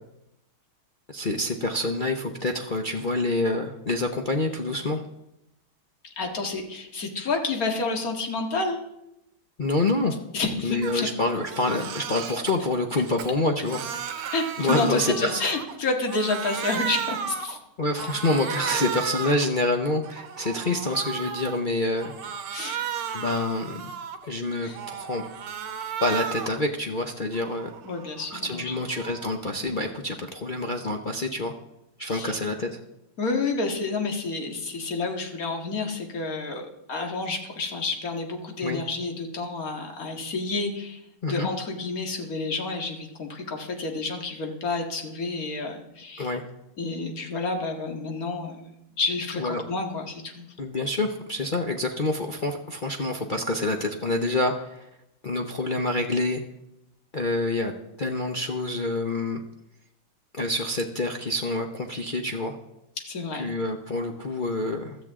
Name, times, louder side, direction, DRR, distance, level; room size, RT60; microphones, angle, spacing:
voice 1, 1.1-5.0 9.6-10.2 10.6-13.8 14.1-14.2 14.6-15.5 17.8-22.1 23.1-23.8 24.3-25.2 26.0-27.7 28.3-31.5 32.0-32.8 38.6-38.8 41.2-41.5 46.2-46.4 49.3-49.6 50.6-54.9 55.2-56.4 57.1-57.7 58.0-59.4 60.3-62.5 63.4-65.0, left 2 dB, 70° left, 2 dB, 0.4 m, -27 dB
voice 2, 6.2-8.9 10.3-11.1 14.3-17.6 22.5-22.9 24.6-24.8 27.8-28.8 32.1-32.3 33.2-46.3 46.8-50.5 63.0-63.5, left 3 dB, 45° left, 3 dB, 2.2 m, -30 dB
Crying sobbing, 10.8-11.0 11.4-12.5 13.0-15.8 16.0-17.6 18.0-19.5 19.9-21.6 22.0-24.3 24.7-26.6 27.0-29.4, right 8 dB, 85° right, 2.0 m, -34 dB
16.0 x 13.0 x 3.7 m, 0.86 s
omnidirectional pair, 2.3 m